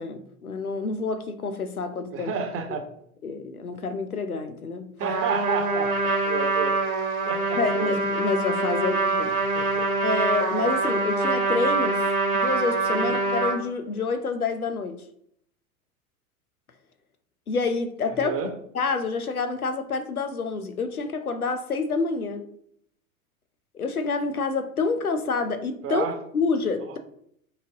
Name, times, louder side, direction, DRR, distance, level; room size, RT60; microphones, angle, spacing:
voice 1, 0.0-2.3 3.2-4.9 7.6-9.4 10.0-15.0 17.5-18.3 18.7-22.5 23.7-26.0 26.3-27.0, left 4 dB, 90° left, 9 dB, 0.8 m, -28 dB
voice 2, 2.1-2.8 5.0-5.9 6.2-6.7 7.2-8.0 9.5-9.9 12.9-13.1 18.2-18.5 25.8-26.2, right 6 dB, 30° right, 6 dB, 1.1 m, -30 dB
Trumpet, 5.0-13.6, right 3 dB, 85° right, 1.8 m, -25 dB
7.0 x 4.3 x 3.6 m, 0.71 s
figure-of-eight pair, 85°, 42 cm